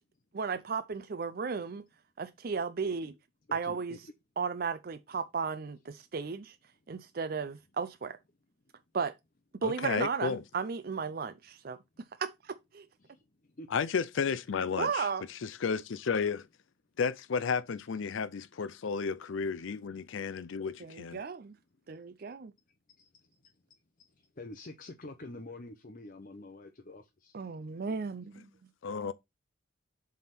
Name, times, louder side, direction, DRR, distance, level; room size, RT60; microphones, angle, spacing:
voice 1, 0.3-1.8 2.2-3.1 3.5-4.0 4.4-6.6 6.9-8.2 8.9-9.1 9.6-11.8 12.2-12.9 14.7-15.2 20.8-21.6 21.9-22.5 27.3-28.5, right 5 dB, 45° right, 0.5 m, -34 dB
voice 2, 3.5-4.0 13.0-13.7 14.3-14.4 18.5-18.6 23.0-23.4 24.1-27.3, left 2 dB, 40° left, 0.7 m, -48 dB
voice 3, 9.6-10.4 13.7-16.5 17.0-21.2 28.8-29.1, left 5 dB, 75° left, 0.5 m, -33 dB
7.5 x 3.6 x 5.9 m
head